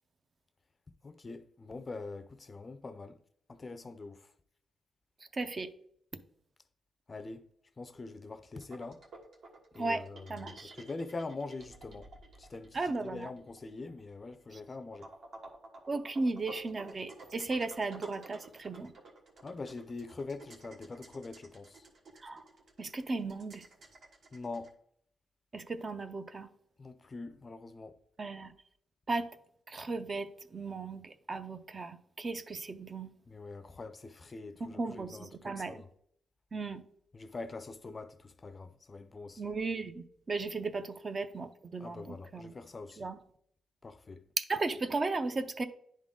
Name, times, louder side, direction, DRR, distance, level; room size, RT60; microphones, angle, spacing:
voice 1, 1.0-3.2 3.5-4.3 7.1-7.4 7.8-9.0 9.7-12.1 12.4-15.1 19.4-21.8 24.3-24.7 26.8-28.0 33.3-35.9 37.1-39.5 41.8-43.1 43.8-44.2, left 3 dB, 30° left, 0.4 m, -44 dB
voice 2, 5.3-5.7 9.8-10.0 10.3-10.8 12.7-13.3 15.9-18.9 22.2-22.4 22.8-23.6 25.5-26.5 28.2-28.5 29.1-29.3 29.7-33.1 34.7-35.8 36.5-36.8 39.4-42.5 43.0-43.2 44.4-45.6, right 3 dB, 30° right, 0.5 m, -36 dB
sound 1, 8.6-24.7, right 3 dB, 60° right, 1.3 m, -53 dB
10.5 x 3.7 x 3.7 m
cardioid pair, 135°, 0 cm